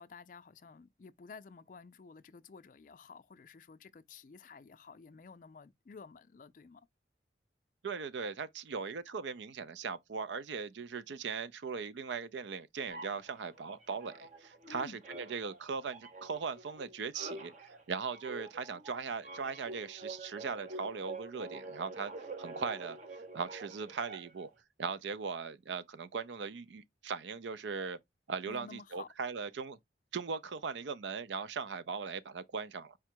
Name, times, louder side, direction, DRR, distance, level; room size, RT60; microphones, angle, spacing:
voice 1, 0.0-6.8 14.7-15.0 28.5-29.1, left 4 dB, 45° left, 0.3 m, -52 dB
voice 2, 7.8-14.9 15.2-22.1 22.4-23.0 23.3-24.5 24.8-28.0 28.3-29.8 30.1-33.0, right 5 dB, 85° right, 0.5 m, -39 dB
sound 1, 12.9-14.7 15.0-24.5, right 2 dB, 40° right, 0.7 m, -47 dB
4.9 x 2.2 x 4.4 m
head